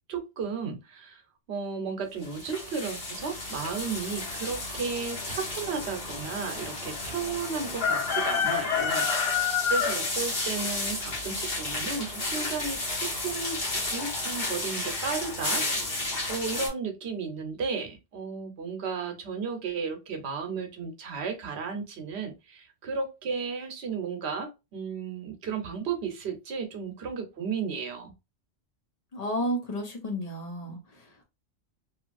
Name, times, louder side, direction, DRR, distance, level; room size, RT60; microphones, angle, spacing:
voice 1, 0.1-1.2 1.5-15.6 16.3-28.1, right 5 dB, 80° right, 1.0 m, -34 dB
sound 1, 2.2-16.7, left 4 dB, 60° left, 1.4 m, -31 dB
voice 2, 29.1-30.8, equal, 40° left, 0.9 m, -31 dB
2.8 x 2.5 x 2.4 m
omnidirectional pair, 1.1 m